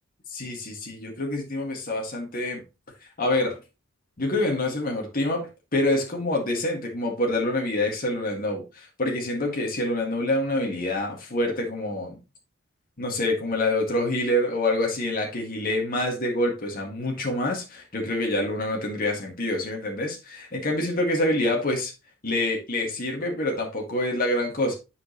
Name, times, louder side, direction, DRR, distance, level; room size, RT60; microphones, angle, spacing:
voice 1, 0.3-2.6 3.2-3.6 4.2-12.2 13.0-21.9 22.2-24.8, left 1 dB, 45° left, 1.8 m, -26 dB
9.5 x 5.2 x 3.0 m
head